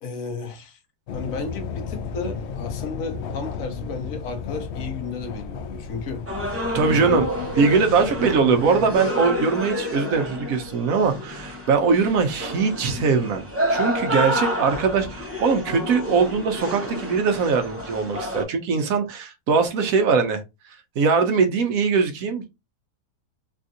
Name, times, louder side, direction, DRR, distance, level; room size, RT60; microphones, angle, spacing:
voice 1, 0.0-0.8 1.1-6.2 6.9-7.3, left 4 dB, 60° left, 1.1 m, -33 dB
sound 1, 1.1-9.0, left 5 dB, 85° left, 0.6 m, -34 dB
sound 2, 6.3-18.4, equal, 25° right, 0.3 m, -29 dB
voice 2, 6.7-7.3 7.6-20.4 21.0-22.5, right 5 dB, 70° right, 1.0 m, -21 dB
3.4 x 2.4 x 2.6 m
omnidirectional pair, 1.7 m